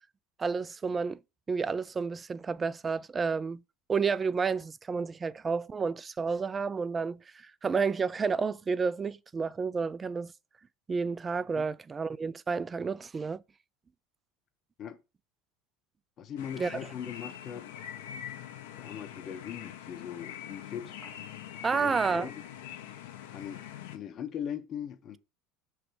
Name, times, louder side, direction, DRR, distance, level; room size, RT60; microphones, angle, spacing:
voice 1, 0.4-1.2 1.5-3.6 3.9-10.3 10.9-13.4 16.6-16.8 21.6-22.3, right 5 dB, 25° right, 0.3 m, -30 dB
voice 2, 16.2-17.8 18.8-21.0 21.7-22.3 23.3-23.6 23.9-25.2, left 8 dB, 45° left, 0.8 m, -40 dB
sound 1, 16.4-24.0, left 10 dB, 80° left, 0.8 m, -43 dB
5.8 x 3.2 x 5.0 m
hypercardioid pair, 90°, 0 cm